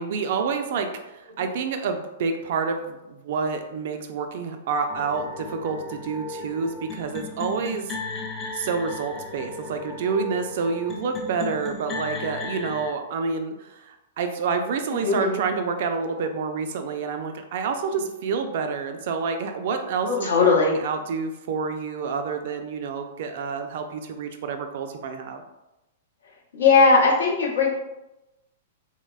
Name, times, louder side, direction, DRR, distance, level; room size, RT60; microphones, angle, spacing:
voice 1, 0.0-8.0 8.5-25.4, right 5 dB, 55° right, 6 dB, 0.3 m, -28 dB
sound 1, 4.9-12.9, left 3 dB, 25° left, 0.4 m, -36 dB
voice 2, 14.9-15.4 20.1-20.7 26.5-27.7, left 4 dB, 70° left, -3 dB, 0.7 m, -19 dB
3.1 x 2.1 x 2.2 m, 0.96 s
figure-of-eight pair, 110°, 0 cm